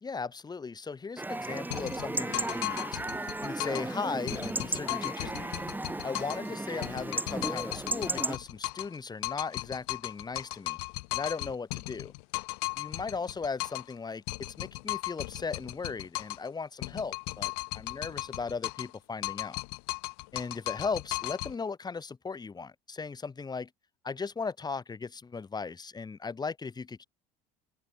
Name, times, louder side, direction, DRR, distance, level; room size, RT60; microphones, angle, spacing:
voice 1, 0.0-3.0 3.4-5.6 6.0-10.8 11.1-12.1 12.8-19.6 20.3-23.7 24.0-27.1, left 4 dB, 20° left, 1.7 m, -37 dB
Chatter / Livestock farm animals working animals / Chirp tweet, 1.2-8.4, right 2 dB, 10° right, 4.0 m, -35 dB
sound 1, 1.7-3.9 4.3-6.5 6.8-9.0 9.2-13.9 14.3-16.5 16.8-19.0 19.2-21.5, left 35 dB, 80° left, 3.8 m, -36 dB
supercardioid pair, 80°, 18 cm